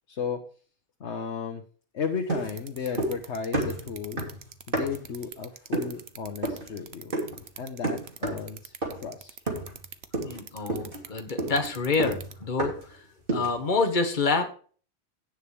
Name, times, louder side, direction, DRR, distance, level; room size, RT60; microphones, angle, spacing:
voice 1, 0.1-0.4 1.0-1.6 1.9-4.2 4.7-7.1 7.6-9.4, left 6 dB, 90° left, 4 dB, 1.4 m, -34 dB
sound 1, 2.3-3.3 3.5-5.1 5.7-6.0 6.4-6.7 7.1-7.4 7.8-8.5 8.8-9.1 9.5-9.8 10.1-10.4 10.7-12.9 13.3-13.6, right 2 dB, 50° right, 3.3 m, -31 dB
sound 2, 2.5-12.3, right 8 dB, 70° right, 1.1 m, -43 dB
voice 2, 10.2-13.0 13.3-14.5, left 4 dB, 45° left, 5 dB, 1.5 m, -27 dB
17.0 x 6.5 x 3.4 m, 0.41 s
omnidirectional pair, 1.1 m